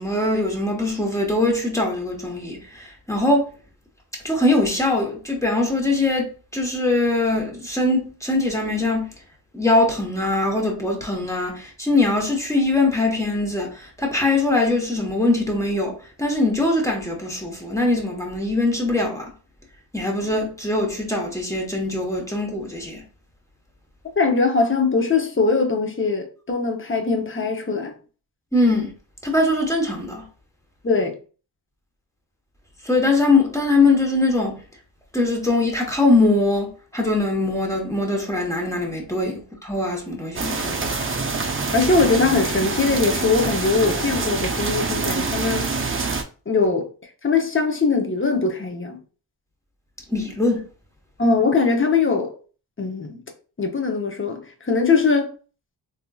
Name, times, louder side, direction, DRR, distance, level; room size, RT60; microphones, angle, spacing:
voice 1, 0.0-3.5 4.2-9.1 9.5-19.3 19.9-23.0 28.5-28.9 29.2-30.3 32.8-34.6 35.1-40.8 50.1-50.7, left 2 dB, 5° left, 1.1 m, -22 dB
voice 2, 24.2-27.9 30.8-31.1 41.7-45.7 46.5-46.9 47.2-49.0 51.2-52.3 52.8-53.2 53.6-55.3, left 4 dB, 30° left, 0.8 m, -21 dB
sound 1, 40.3-46.2, right 3 dB, 30° right, 0.5 m, -25 dB
3.5 x 2.7 x 2.3 m
cardioid pair, 60°, 43 cm